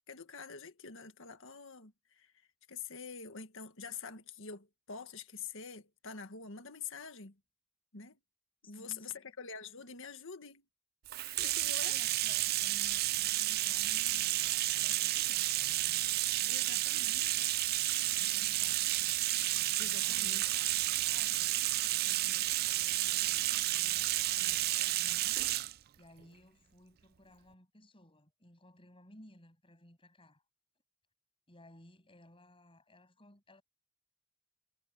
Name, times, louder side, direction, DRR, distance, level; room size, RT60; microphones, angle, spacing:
voice 1, 0.1-7.4 7.9-8.2 8.6-10.7 11.2-12.0 16.5-17.3 19.8-20.4, left 6 dB, 65° left, 1.8 m, -46 dB
voice 2, 8.6-9.3 11.7-16.9 18.0-19.0 19.8-21.5 21.9-25.4 26.0-30.4 31.5-33.6, left 1 dB, 25° left, 7.6 m, -59 dB
Bathtub (filling or washing), 11.1-25.7, right 16 dB, 45° right, 0.4 m, -31 dB
head